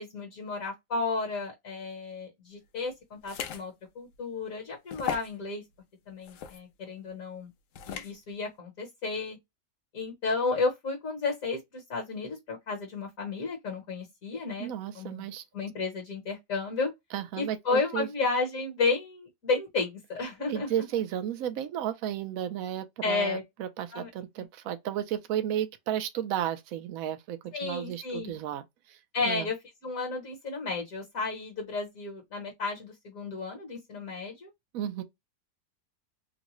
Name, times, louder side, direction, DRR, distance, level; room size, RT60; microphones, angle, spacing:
voice 1, 0.0-5.6 6.1-7.5 7.9-9.4 9.9-14.7 14.9-15.2 15.5-16.9 17.4-20.7 23.0-23.4 23.9-24.1 27.5-28.4 29.1-29.6 29.8-34.5, left 4 dB, 55° left, 1.4 m, -32 dB
sound 1, 3.2-3.6 4.1-4.2 4.9-5.4 6.2-6.6 7.7-8.1, left 9 dB, 70° left, 0.7 m, -36 dB
voice 2, 14.6-15.4 17.1-18.1 20.5-28.6 28.9-29.0 29.2-29.5 34.7-35.0, right 10 dB, 65° right, 0.9 m, -33 dB
3.9 x 2.2 x 3.0 m
omnidirectional pair, 1.9 m